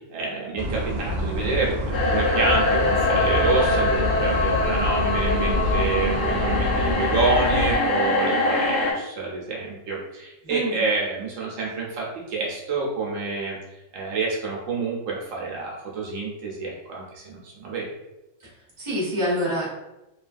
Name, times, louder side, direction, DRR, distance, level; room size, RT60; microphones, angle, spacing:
voice 1, 0.1-13.6 13.9-17.9, right 4 dB, 80° right, -3 dB, 1.0 m, -28 dB
sound 1, 0.6-7.8, left 1 dB, 60° right, 0.7 m, -27 dB
sound 2, 1.9-8.9, left 2 dB, 55° left, 0.8 m, -23 dB
voice 2, 10.4-10.8 18.4-18.5 18.8-19.7, equal, 25° right, -7 dB, 1.1 m, -26 dB
3.1 x 2.3 x 2.4 m, 0.96 s
omnidirectional pair, 1.3 m